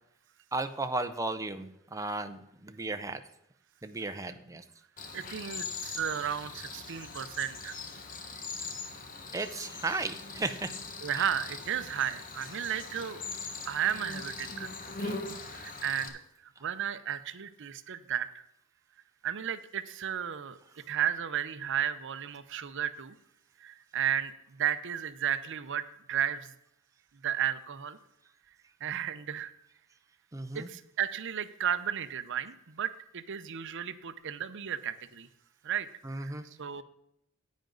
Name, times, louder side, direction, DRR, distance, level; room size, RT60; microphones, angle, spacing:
voice 1, 0.5-3.2 3.8-4.6 9.3-10.7 11.1-11.3 30.3-30.7 36.0-36.4, right 2 dB, 15° right, 8 dB, 0.6 m, -35 dB
Cricket, 5.0-16.1, left 4 dB, 40° left, 1.3 m, -41 dB
voice 2, 5.1-7.7 11.0-13.3 13.6-14.7 15.0-15.2 15.5-16.1 16.6-18.3 19.2-20.6 20.9-23.1 23.6-24.3 24.6-26.5 27.2-28.0 28.8-29.5 30.5-35.3 35.6-35.9 36.2-36.3 36.6-36.8, right 9 dB, 60° right, 13 dB, 0.6 m, -33 dB
10.5 x 9.1 x 3.9 m, 0.81 s
head